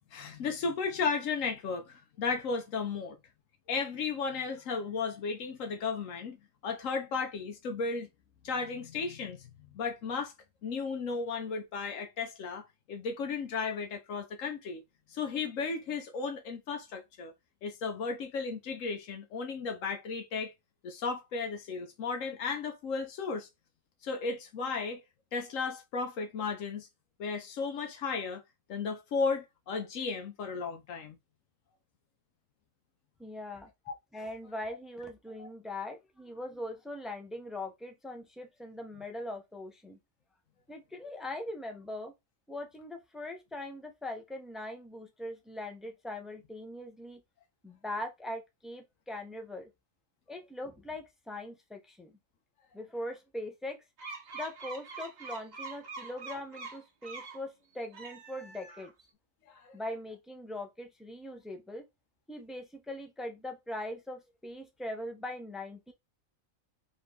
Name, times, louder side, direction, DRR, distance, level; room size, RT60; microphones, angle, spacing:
voice 1, 0.1-3.2 3.7-6.4 6.6-8.1 8.4-10.3 10.6-14.8 15.1-17.3 17.6-20.5 20.8-23.5 24.0-25.0 25.3-26.9 27.2-28.4 28.7-31.2 33.9-34.0 35.4-35.5 59.5-59.7, left 5 dB, 75° left, 1.1 m, -34 dB
voice 2, 33.2-33.7 34.1-40.0 40.7-42.1 42.5-47.2 47.6-49.7 50.3-52.1 52.7-53.8 54.3-58.9 59.7-61.8 62.3-65.9, left 1 dB, ahead, 0.3 m, -41 dB
sound 1, 54.0-57.4 57.8-59.1, right 4 dB, 40° right, 0.7 m, -44 dB
4.0 x 2.7 x 3.2 m
omnidirectional pair, 1.4 m